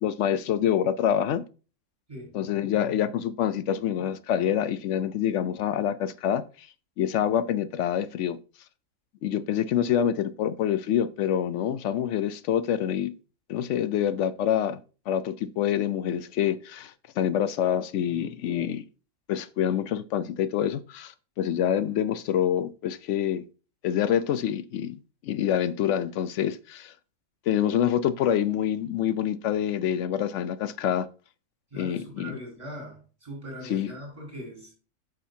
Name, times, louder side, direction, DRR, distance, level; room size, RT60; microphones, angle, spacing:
voice 1, 0.0-1.4 2.3-6.7 7.0-8.4 9.2-13.2 13.5-14.8 15.1-18.8 19.3-23.4 23.8-25.0 25.2-26.9 27.5-31.1 31.7-32.4 33.6-33.9, left 10 dB, 65° left, 0.7 m, -26 dB
voice 2, 31.7-34.7, equal, 20° right, 5.3 m, -40 dB
9.9 x 6.4 x 2.7 m
omnidirectional pair, 1.6 m